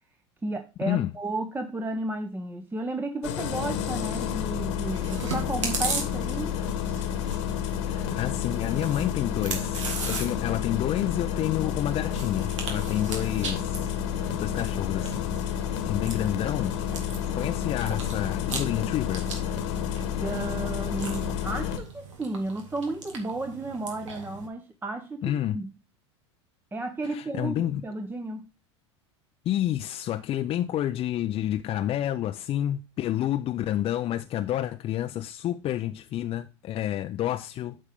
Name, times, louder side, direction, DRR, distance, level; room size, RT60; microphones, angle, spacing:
voice 1, 0.4-6.6 20.2-25.7 26.7-28.5, right 2 dB, 15° right, 0.8 m, -33 dB
Engine starting, 3.2-21.8, left 8 dB, 70° left, 1.4 m, -30 dB
Chewing mastication, 4.9-24.5, right 4 dB, 90° right, 2.1 m, -39 dB
voice 2, 7.9-13.9 14.3-15.3 15.8-16.7 17.3-19.3 25.2-25.6 27.1-27.8 29.5-37.8, left 12 dB, 40° left, 0.5 m, -29 dB
8.4 x 5.5 x 3.5 m
hypercardioid pair, 95°, 15 cm